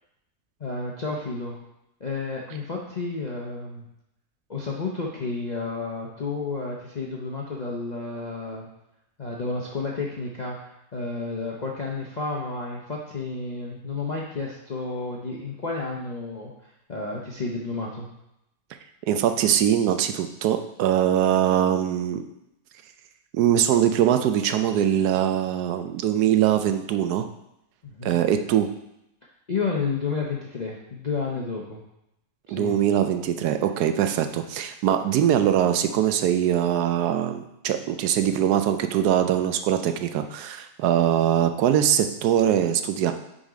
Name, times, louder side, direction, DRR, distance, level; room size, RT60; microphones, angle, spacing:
voice 1, 0.6-1.6 2.0-3.9 4.5-8.7 9.2-16.5 16.9-18.1 27.8-28.1 29.5-31.8 32.5-32.7, left 4 dB, 50° left, -3 dB, 0.5 m, -31 dB
voice 2, 19.1-22.2 23.3-27.3 28.0-28.7 32.5-43.1, right 10 dB, 80° right, 8 dB, 1.1 m, -22 dB
6.2 x 4.0 x 5.0 m, 0.85 s
omnidirectional pair, 1.7 m